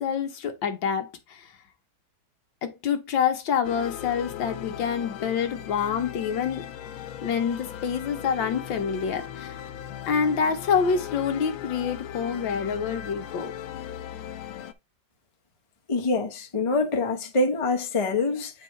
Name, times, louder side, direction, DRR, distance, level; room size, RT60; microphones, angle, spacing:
voice 1, 0.0-1.5 2.6-6.7 7.2-9.6 10.1-13.5, left 6 dB, 70° left, 1.8 m, -27 dB
sound 1, 3.6-14.7, left 10 dB, 90° left, 1.6 m, -38 dB
voice 2, 15.9-18.5, left 3 dB, 25° left, 0.7 m, -25 dB
8.9 x 4.7 x 3.2 m
omnidirectional pair, 2.2 m